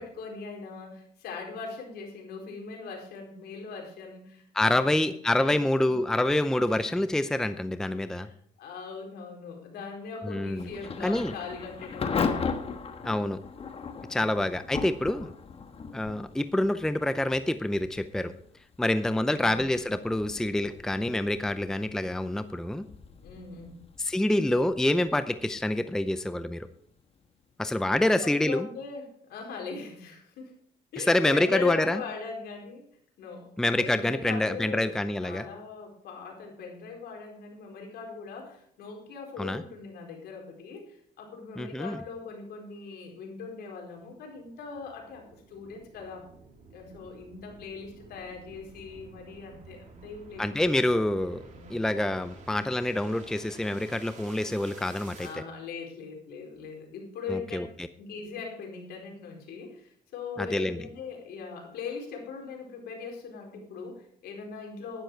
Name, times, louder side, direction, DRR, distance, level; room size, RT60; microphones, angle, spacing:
voice 1, 0.0-5.1 5.4-5.9 7.9-12.4 23.2-23.8 28.0-30.5 30.9-32.8 33.2-46.3 46.7-50.9 51.5-51.8 55.2-57.6 58.0-65.0, left 5 dB, 70° left, 1 dB, 4.3 m, -40 dB
voice 2, 4.5-8.3 10.2-10.7 11.0-11.3 13.0-13.4 14.1-15.3 15.9-18.3 18.8-22.9 24.0-26.7 27.6-28.7 31.0-32.0 33.6-35.4 39.4-39.6 41.6-42.0 50.4-51.4 51.7-55.4 57.3-57.7 60.4-60.8, left 1 dB, 5° left, 11 dB, 0.6 m, -27 dB
Thunder / Rain, 10.5-27.3, left 5 dB, 35° left, 1.3 m, -38 dB
sound 1, 43.9-55.4, right 4 dB, 45° right, 2.9 m, -51 dB
11.5 x 10.5 x 4.6 m, 0.65 s
cardioid pair, 110°, 17 cm